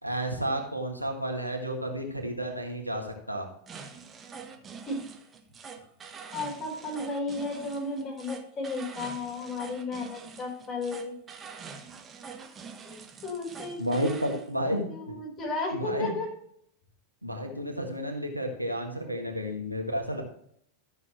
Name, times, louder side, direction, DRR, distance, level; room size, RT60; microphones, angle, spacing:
voice 1, 0.0-3.5 13.8-15.1 15.7-16.1 17.2-20.2, equal, 90° right, 2 dB, 1.7 m, -31 dB
sound 1, 3.7-14.5, right 5 dB, 20° right, 1.0 m, -45 dB
voice 2, 6.3-11.2 12.8-14.4 14.8-16.3, left 2 dB, 30° left, 0 dB, 4.0 m, -34 dB
13.0 x 6.9 x 3.1 m, 0.66 s
figure-of-eight pair, 90°, 0 cm